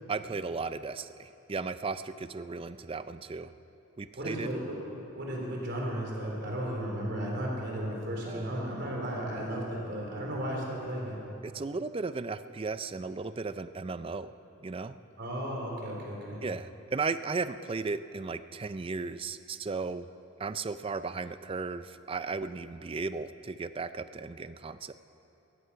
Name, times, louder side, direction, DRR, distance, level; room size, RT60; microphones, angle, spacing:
voice 1, 0.1-3.5 4.0-4.5 8.2-8.8 11.4-14.3 14.6-15.0 16.4-20.1 20.4-24.9, right 4 dB, 25° right, 13 dB, 0.4 m, -35 dB
voice 2, 4.2-4.8 5.1-11.2 15.2-16.4, right 1 dB, 55° right, -2 dB, 3.7 m, -34 dB
17.0 x 14.5 x 5.7 m, 3.0 s
head